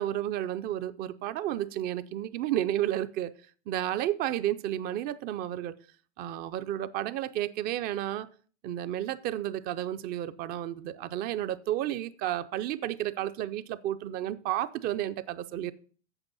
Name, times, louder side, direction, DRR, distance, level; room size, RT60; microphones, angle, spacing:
voice 1, 0.0-3.3 3.7-5.7 6.2-8.3 8.6-15.7, right 12 dB, 25° right, 0.4 m, -32 dB
8.1 x 7.0 x 5.4 m
hypercardioid pair, 130°, 35 cm